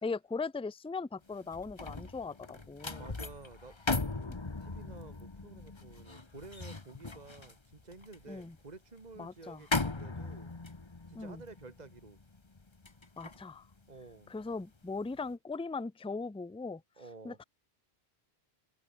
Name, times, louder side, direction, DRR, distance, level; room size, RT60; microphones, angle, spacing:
voice 1, 0.0-3.1 8.3-8.5 9.2-9.6 11.1-11.4 13.2-13.7 14.3-16.8 17.2-17.4, left 4 dB, 5° left, 0.5 m, -39 dB
sound 1, 1.3-14.6 15.0-15.3, left 3 dB, 25° left, 1.3 m, -39 dB
voice 2, 3.0-10.5 11.1-12.2 13.9-14.3 17.0-17.4, right 3 dB, 40° right, 2.2 m, -51 dB
omnidirectional pair, 1.1 m